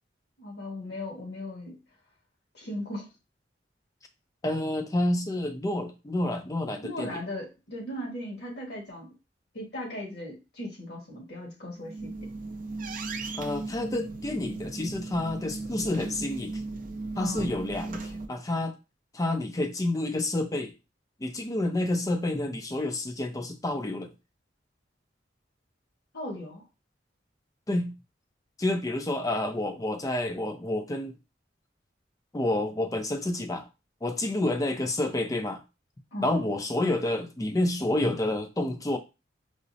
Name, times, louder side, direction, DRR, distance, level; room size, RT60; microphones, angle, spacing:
voice 1, 0.4-1.8 2.5-3.1 6.8-9.1 9.5-12.1 17.1-17.5 26.1-26.6 36.1-36.4, left 1 dB, 65° left, 1.5 m, -37 dB
voice 2, 4.4-7.2 13.4-16.6 17.2-18.7 19.1-20.7 21.2-24.1 27.7-27.9 28.6-31.2 32.3-33.6 34.0-35.6 36.2-39.0, left 1 dB, 20° left, 0.4 m, -29 dB
sound 1, 11.8-18.3, right 3 dB, 45° right, 0.5 m, -37 dB
4.9 x 2.0 x 2.6 m
head